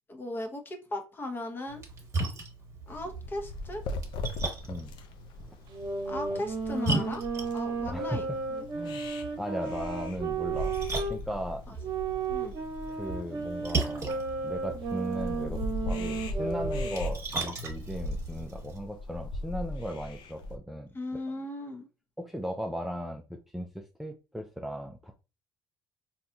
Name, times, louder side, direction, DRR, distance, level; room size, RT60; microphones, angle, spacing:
voice 1, 0.1-1.8 2.9-3.8 6.1-8.7 11.7-11.8 12.3-12.5 20.9-21.9, left 1 dB, 25° left, 0.8 m, -37 dB
Splash splatter, 1.7-18.8, right 2 dB, 35° right, 1.1 m, -38 dB
sound 1, 2.9-20.6, left 1 dB, 65° left, 0.5 m, -39 dB
sound 2, 5.7-11.2 11.8-17.0, right 4 dB, 55° right, 0.8 m, -34 dB
voice 2, 7.9-8.4 8.7-11.6 12.9-20.9 22.2-25.1, equal, ahead, 0.4 m, -37 dB
3.9 x 2.8 x 2.3 m
cardioid pair, 105°, 9 cm